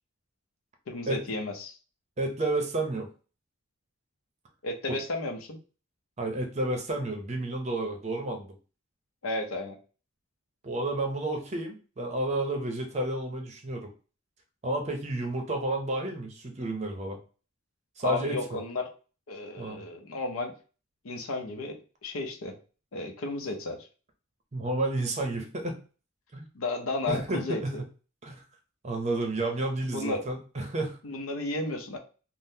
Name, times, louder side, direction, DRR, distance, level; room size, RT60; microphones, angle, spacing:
voice 1, 0.9-1.8 4.6-5.6 9.2-9.8 18.0-18.9 19.3-20.5 21.0-22.6 22.9-23.8 26.5-27.8 29.9-30.2 31.0-32.0, left 2 dB, 75° left, 4 dB, 0.6 m, -33 dB
voice 2, 2.2-3.1 4.9-5.0 6.2-8.5 10.6-13.9 14.6-17.2 18.0-18.4 19.6-19.8 24.5-25.8 26.3-26.5 27.1-27.8 28.2-28.4 28.8-31.0, right 2 dB, 35° right, 3 dB, 0.6 m, -31 dB
3.7 x 2.0 x 2.7 m, 0.36 s
head